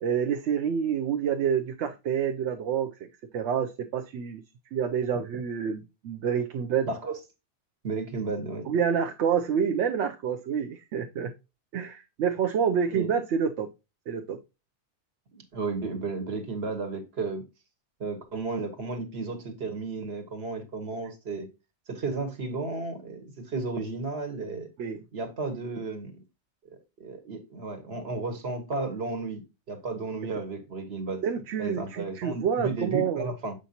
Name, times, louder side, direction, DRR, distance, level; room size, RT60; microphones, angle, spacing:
voice 1, 0.0-4.4 4.7-6.9 8.7-11.3 11.7-13.7 14.1-14.4 24.8-25.0 31.2-33.3, right 7 dB, 80° right, 0.9 m, -28 dB
voice 2, 6.9-7.2 7.8-8.7 12.9-13.1 15.5-17.4 18.0-21.5 21.9-24.7 25.1-26.2 26.6-29.4 29.7-31.2 31.6-33.5, right 3 dB, 65° right, 1.5 m, -33 dB
7.3 x 5.2 x 2.8 m
omnidirectional pair, 1.2 m